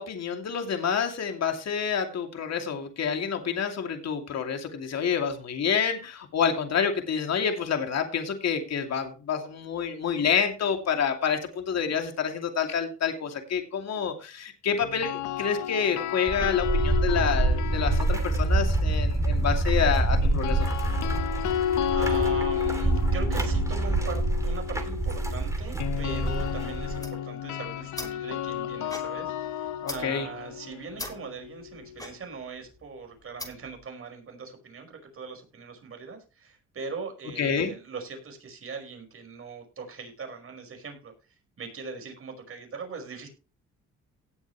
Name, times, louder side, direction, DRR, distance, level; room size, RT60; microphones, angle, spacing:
voice 1, 0.0-20.7 29.8-30.3 37.4-37.7, left 7 dB, 60° left, 5 dB, 2.6 m, -28 dB
sound 1, 14.8-19.0 20.2-32.1, left 10 dB, 75° left, 0.9 m, -33 dB
sound 2, 16.3-27.1, right 2 dB, 10° right, 2.9 m, -26 dB
voice 2, 21.9-41.1 41.6-43.3, right 4 dB, 45° right, 4 dB, 5.3 m, -40 dB
sound 3, 27.0-33.8, left 1 dB, 10° left, 3.3 m, -43 dB
18.0 x 7.2 x 3.1 m, 0.33 s
cardioid pair, 90°, 30 cm